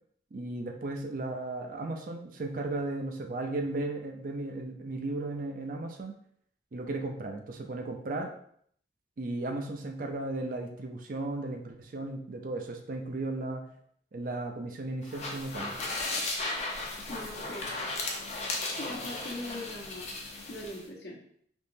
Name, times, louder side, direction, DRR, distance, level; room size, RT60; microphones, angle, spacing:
voice 1, 0.3-6.2 6.7-8.3 9.2-13.6 14.1-15.8, right 2 dB, 50° right, 3 dB, 0.4 m, -35 dB
sound 1, 15.0-20.8, left 2 dB, 40° left, 0.6 m, -35 dB
voice 2, 17.1-17.7 18.8-20.1 20.5-21.2, left 1 dB, 65° left, -3 dB, 1.0 m, -40 dB
3.6 x 2.9 x 2.7 m, 0.65 s
head